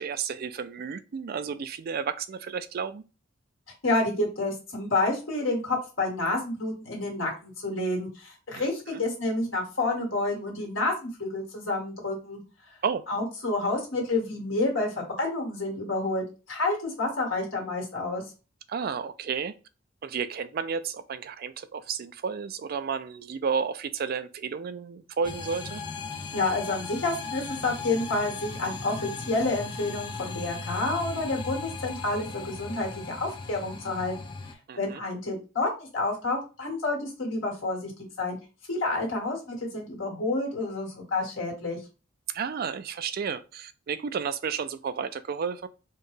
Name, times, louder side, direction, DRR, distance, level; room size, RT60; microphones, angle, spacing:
voice 1, 0.0-3.0 8.6-8.7 8.9-9.0 12.8-13.0 18.7-19.5 20.0-25.8 34.7-35.0 42.3-45.7, right 6 dB, 50° right, 0.3 m, -32 dB
voice 2, 3.8-12.4 13.1-18.2 26.3-34.1 34.8-37.9 38.2-38.4 38.7-41.8, left 2 dB, 70° left, 1.6 m, -29 dB
sound 1, 25.2-34.5, left 4 dB, 25° left, 0.5 m, -37 dB
4.4 x 2.3 x 3.2 m
head